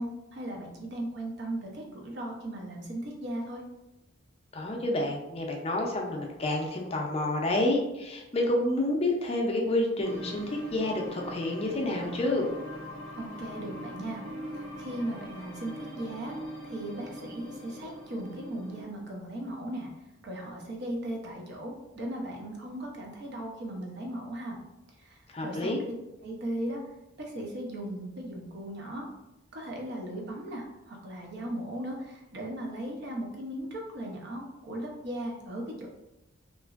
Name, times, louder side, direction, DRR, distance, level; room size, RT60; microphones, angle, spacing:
voice 1, 0.0-3.6 13.2-14.2 14.5-16.3 16.6-19.9 20.2-24.6 25.0-25.7 26.2-26.8 27.2-29.1 29.5-35.9, right 1 dB, 55° right, 0 dB, 0.6 m, -37 dB
voice 2, 4.5-12.5 25.3-25.8, left 1 dB, 30° left, 1 dB, 0.5 m, -29 dB
sound 1, 10.0-18.8, equal, 75° right, 1.4 m, -42 dB
2.9 x 2.5 x 2.4 m, 0.94 s
head